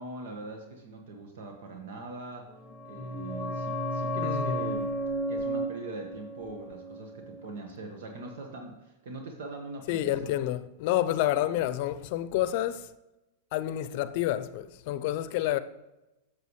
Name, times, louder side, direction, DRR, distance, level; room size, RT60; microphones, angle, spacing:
voice 1, 0.0-2.5 2.8-5.0 5.3-10.3 11.5-11.6, right 2 dB, 70° right, 1.4 m, -42 dB
sound 1, 2.6-8.0 8.3-8.4, equal, 15° left, 0.8 m, -33 dB
voice 2, 4.1-4.6 9.9-12.9 13.5-15.6, left 13 dB, 55° left, 0.6 m, -29 dB
9.4 x 6.7 x 3.2 m
hypercardioid pair, 125°, 0 cm